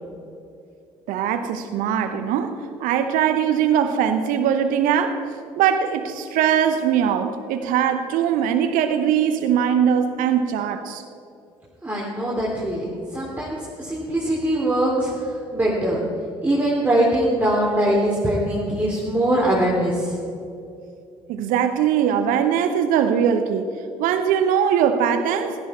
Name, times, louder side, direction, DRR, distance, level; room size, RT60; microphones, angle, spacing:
voice 1, 1.1-2.5 2.8-5.2 5.6-11.0 21.3-23.7 24.0-25.6, right 8 dB, 65° right, 8 dB, 0.8 m, -21 dB
voice 2, 11.8-16.0 16.4-20.2, right 1 dB, 10° right, -6 dB, 3.1 m, -22 dB
16.5 x 12.0 x 4.3 m, 2.6 s
figure-of-eight pair, 50°, 15 cm